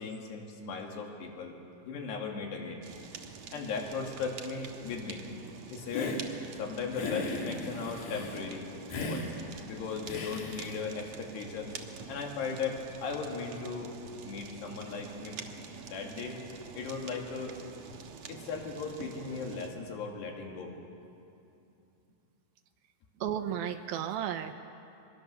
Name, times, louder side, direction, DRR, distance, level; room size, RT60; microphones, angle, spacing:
voice 1, 0.0-1.6 1.8-2.8 3.5-5.2 5.7-6.2 6.5-8.7 9.1-9.3 9.6-11.8 12.1-14.0 14.2-15.4 15.9-16.4 16.8-17.6 18.3-20.7, left 5 dB, 90° left, 1 dB, 4.5 m, -37 dB
Fire, 2.8-19.7, right 5 dB, 60° right, 2.0 m, -47 dB
Hiss, 5.9-6.3 6.9-8.4 8.9-9.3 10.1-10.8, left 3 dB, 65° left, 4.0 m, -36 dB
voice 2, 23.2-24.5, right 9 dB, 75° right, 8 dB, 2.4 m, -33 dB
23.5 x 22.5 x 6.8 m, 2.7 s
omnidirectional pair, 4.7 m